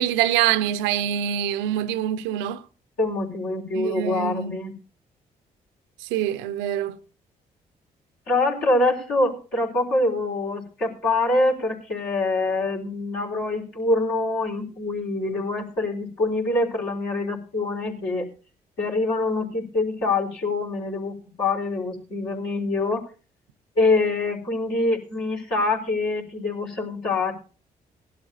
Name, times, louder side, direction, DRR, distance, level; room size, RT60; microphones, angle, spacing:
voice 1, 0.0-2.6 3.7-4.6 6.0-7.0, right 11 dB, 75° right, 0.6 m, -25 dB
voice 2, 3.0-4.7 8.3-18.3 18.8-23.1 23.8-27.3, left 2 dB, 70° left, 4.1 m, -25 dB
19.0 x 12.0 x 2.7 m
hypercardioid pair, 40°, 19 cm